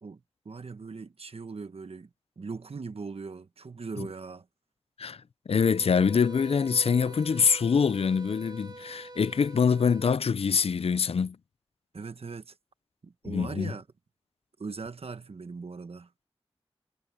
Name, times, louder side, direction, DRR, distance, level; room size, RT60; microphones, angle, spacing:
voice 1, 0.0-2.1 2.4-4.4 11.9-12.5 13.0-13.8 14.6-16.1, right 4 dB, 80° right, 1.2 m, -40 dB
voice 2, 5.5-11.4 13.2-13.7, left 6 dB, 80° left, 0.4 m, -24 dB
sound 1, 5.5-10.1, right 2 dB, 40° right, 1.4 m, -46 dB
wide cardioid pair, 50°, 10 cm